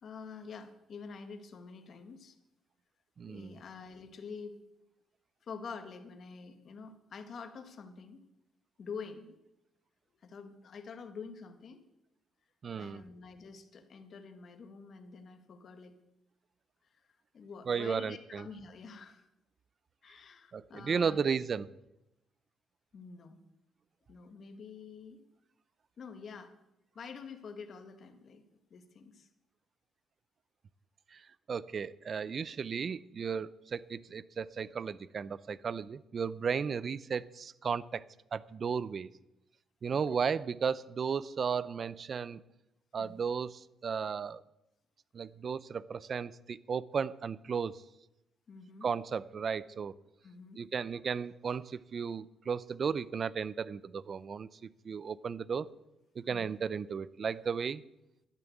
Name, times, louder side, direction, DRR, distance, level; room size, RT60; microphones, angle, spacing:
voice 1, 0.0-2.4 3.3-4.6 5.4-8.2 8.8-9.4 10.2-11.8 12.8-16.0 16.8-17.1 17.3-19.3 20.0-21.3 22.9-23.4 24.1-25.2 26.0-26.5 27.0-28.4 28.7-29.3 39.9-40.0 43.0-43.2 48.5-48.9 50.2-50.6 56.3-56.5, left 5 dB, 55° left, 7 dB, 1.8 m, -47 dB
voice 2, 3.2-3.6 12.6-13.0 17.7-18.5 20.5-21.7 31.1-38.0 38.3-39.1 39.8-42.4 42.9-44.4 45.1-47.8 48.8-49.9 50.6-55.7 56.2-57.8, right 6 dB, 45° right, 19 dB, 0.6 m, -34 dB
12.5 x 11.0 x 7.9 m, 0.90 s
cardioid pair, 90°, 0 cm